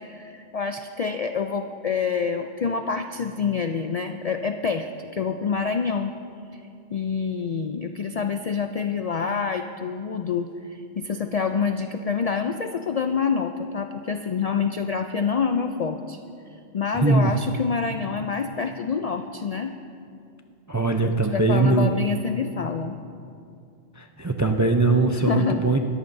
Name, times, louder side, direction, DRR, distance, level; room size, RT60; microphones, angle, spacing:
voice 1, 0.0-6.1 6.5-6.6 6.9-16.2 16.5-19.7 21.0-23.0 25.1-25.6, left 5 dB, 60° left, 7 dB, 0.4 m, -27 dB
voice 2, 16.9-17.4 20.7-21.9 24.0-25.8, right 3 dB, 30° right, 4 dB, 0.3 m, -21 dB
20.5 x 14.0 x 2.7 m, 2.5 s
omnidirectional pair, 1.2 m